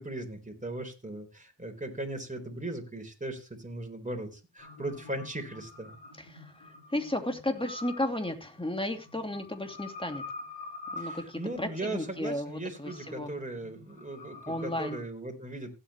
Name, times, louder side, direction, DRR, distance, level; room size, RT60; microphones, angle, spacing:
voice 1, 0.0-5.9 11.0-15.7, right 2 dB, 15° right, 3 dB, 4.1 m, -38 dB
sound 1, 4.6-15.0, left 2 dB, 75° left, 4.3 m, -46 dB
voice 2, 6.2-6.5 6.9-10.2 10.9-13.3 14.5-15.0, left 1 dB, 10° left, 6 dB, 2.9 m, -34 dB
16.0 x 8.4 x 3.1 m, 0.29 s
cardioid pair, 45°, 44 cm